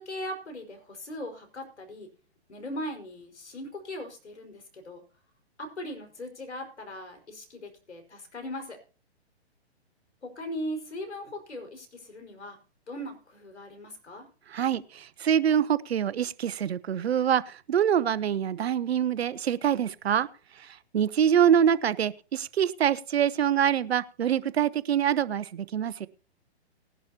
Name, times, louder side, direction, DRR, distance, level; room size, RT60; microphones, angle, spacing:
voice 1, 0.0-2.1 2.5-5.0 5.6-8.8 10.2-12.6 12.9-14.3, equal, 85° left, 5.2 m, -39 dB
voice 2, 14.5-20.3 20.9-26.1, right 9 dB, 70° right, 0.9 m, -25 dB
19.0 x 11.5 x 2.9 m
hypercardioid pair, 135°, 33 cm